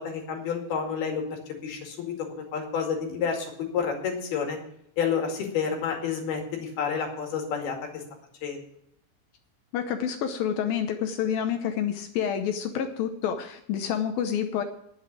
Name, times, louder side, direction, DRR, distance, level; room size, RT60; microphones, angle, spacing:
voice 1, 0.0-4.6 5.0-8.0 8.4-8.6, left 6 dB, 60° left, 2 dB, 4.0 m, -30 dB
voice 2, 9.7-14.6, left 8 dB, 75° left, 7 dB, 2.1 m, -28 dB
11.0 x 7.8 x 8.5 m, 0.74 s
omnidirectional pair, 5.2 m